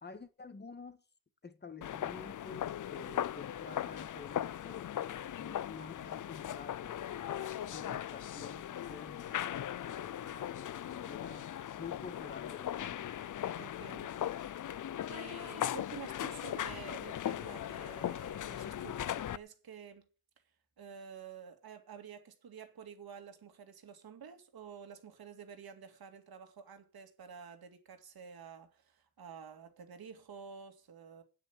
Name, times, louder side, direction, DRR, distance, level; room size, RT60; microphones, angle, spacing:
voice 1, 0.0-1.0 1.4-7.4 7.7-11.5 11.8-13.2, left 4 dB, 30° left, 1.7 m, -50 dB
sound 1, 1.8-19.4, left 11 dB, 55° left, 0.5 m, -39 dB
voice 2, 13.6-14.1 15.1-20.1 20.8-31.2, right 7 dB, 85° right, 2.4 m, -50 dB
9.2 x 8.6 x 8.3 m
wide cardioid pair, 105°, 36 cm